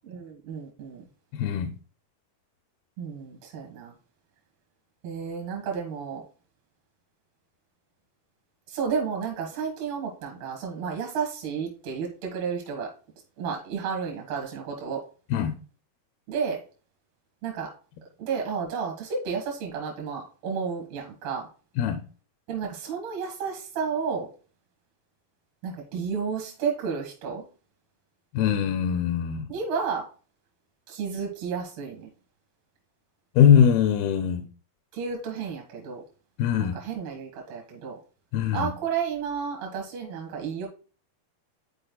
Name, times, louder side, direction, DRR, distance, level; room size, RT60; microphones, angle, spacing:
voice 1, 0.0-1.0 3.0-3.9 5.0-6.2 8.7-12.9 13.4-15.0 16.3-16.6 17.4-17.7 18.2-21.5 22.5-24.3 25.6-27.4 29.5-30.1 30.9-32.1 34.9-36.0 36.6-38.0 38.5-40.7, right 6 dB, 80° right, 3.4 m, -32 dB
voice 2, 1.3-1.7 15.3-15.6 21.8-22.0 28.3-29.5 33.4-34.4 36.4-36.8 38.3-38.7, left 8 dB, 80° left, 2.4 m, -21 dB
12.0 x 4.3 x 2.3 m
omnidirectional pair, 4.5 m